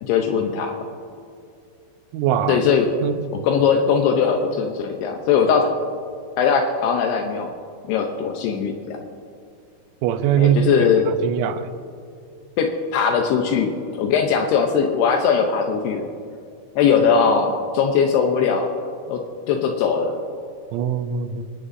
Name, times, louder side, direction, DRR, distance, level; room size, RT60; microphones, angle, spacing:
voice 1, 0.0-0.8 2.5-2.9 3.4-5.7 6.4-7.5 7.9-9.0 10.4-11.1 12.6-13.7 14.0-16.1 16.8-18.7 19.1-19.2 19.5-20.2, left 6 dB, 85° left, 3 dB, 2.3 m, -20 dB
voice 2, 2.1-2.6 3.0-3.2 10.0-10.6 11.1-11.7 20.7-21.4, right 9 dB, 85° right, 8 dB, 3.5 m, -21 dB
26.5 x 11.5 x 2.7 m, 2.4 s
omnidirectional pair, 5.9 m